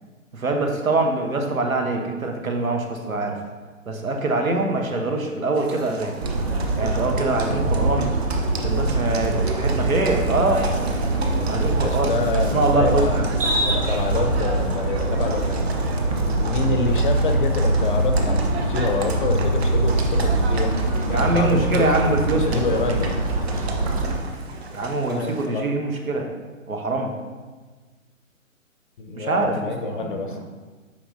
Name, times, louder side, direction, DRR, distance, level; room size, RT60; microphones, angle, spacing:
voice 1, 0.3-3.4 3.9-6.1 6.8-8.2 8.6-10.7 11.5-12.1 12.5-13.2 21.1-22.6 24.7-26.3 26.7-27.1 29.1-30.3, right 2 dB, 85° right, 3 dB, 1.2 m, -24 dB
Livestock farm animals working animals, 5.5-25.5, right 3 dB, 50° right, 0.9 m, -35 dB
sound 1, 6.2-24.2, right 2 dB, 30° right, 0.5 m, -23 dB
voice 2, 11.7-13.3 13.6-15.7 16.1-21.9 22.3-23.2 25.0-25.7 29.0-30.4, left 4 dB, 40° left, 5 dB, 0.6 m, -27 dB
8.6 x 5.2 x 2.7 m, 1.4 s
figure-of-eight pair, 140°, 41 cm